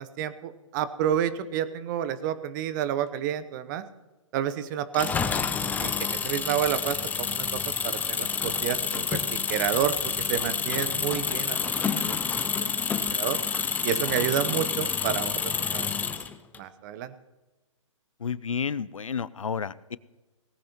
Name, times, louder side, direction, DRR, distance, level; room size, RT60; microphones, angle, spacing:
voice 1, 0.0-3.8 4.3-5.3 5.8-9.9 10.3-11.6 11.9-12.2 12.6-13.4 13.8-16.2 16.6-17.1, right 10 dB, 35° right, 13 dB, 0.9 m, -30 dB
Engine, 4.9-16.6, left 6 dB, 10° left, 0.6 m, -28 dB
voice 2, 18.2-20.0, left 6 dB, 80° left, 19 dB, 0.6 m, -31 dB
18.5 x 15.5 x 3.0 m, 1.1 s
figure-of-eight pair, 125°, 17 cm